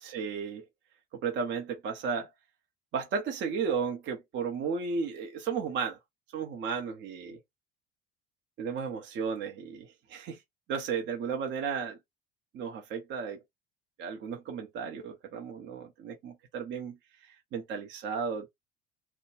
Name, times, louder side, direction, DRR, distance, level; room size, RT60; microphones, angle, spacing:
voice 1, 0.0-0.6 1.1-2.3 2.9-6.0 6.3-7.4 8.6-10.4 10.7-12.0 12.5-13.4 14.0-17.0 17.2-18.5, right 6 dB, 35° right, 0.7 m, -34 dB
2.2 x 2.1 x 3.1 m
figure-of-eight pair, 65°, 32 cm